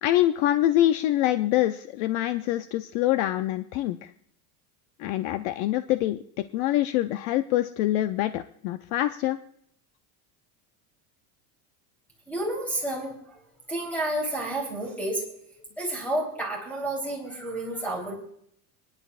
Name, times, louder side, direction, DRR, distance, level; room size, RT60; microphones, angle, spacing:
voice 1, 0.0-4.1 5.0-9.4, left 14 dB, 55° left, 10 dB, 0.6 m, -25 dB
voice 2, 12.3-13.1 13.7-15.2 15.8-18.1, right 1 dB, 5° left, 0 dB, 3.5 m, -30 dB
28.0 x 10.5 x 2.4 m, 0.70 s
cardioid pair, 165°, 44 cm